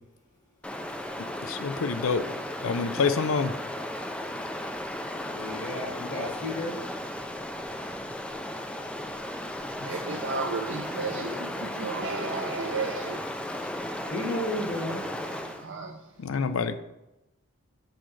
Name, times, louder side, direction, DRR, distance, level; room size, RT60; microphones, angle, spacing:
Stream, 0.6-15.7, left 1 dB, 5° left, 0.3 m, -35 dB
voice 1, 1.5-2.3 2.6-3.5 9.8-10.2 16.2-16.7, left 5 dB, 90° left, 11 dB, 0.5 m, -27 dB
voice 2, 5.2-6.8 9.9-10.0 13.7-15.0, left 1 dB, 40° left, -3 dB, 1.2 m, -33 dB
voice 3, 9.9-13.2 15.2-15.3 15.6-16.0, right 4 dB, 60° right, 2 dB, 0.5 m, -33 dB
6.4 x 5.8 x 3.2 m, 0.95 s
head